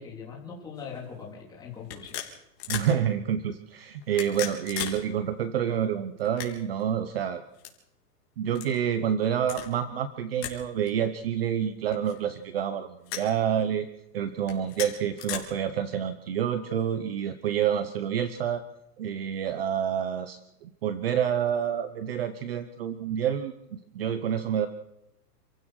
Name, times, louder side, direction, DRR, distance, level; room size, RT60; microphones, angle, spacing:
voice 1, 0.0-2.2, left 6 dB, 10° left, -2 dB, 3.5 m, -41 dB
sound 1, 0.8-1.0 1.9-2.9 4.0-5.0 5.3-5.4 6.2-6.8 7.5-7.7 8.5-8.7 9.4-9.7 10.4-10.6 10.9-11.0 11.9-12.4 13.1-13.3 14.4-15.4, left 11 dB, 40° left, 3.9 m, -36 dB
voice 2, 2.7-7.4 8.4-13.9 14.1-18.6 19.0-24.7, right 9 dB, 35° right, 12 dB, 0.9 m, -28 dB
28.0 x 15.5 x 6.4 m, 0.85 s
supercardioid pair, 175°, 48 cm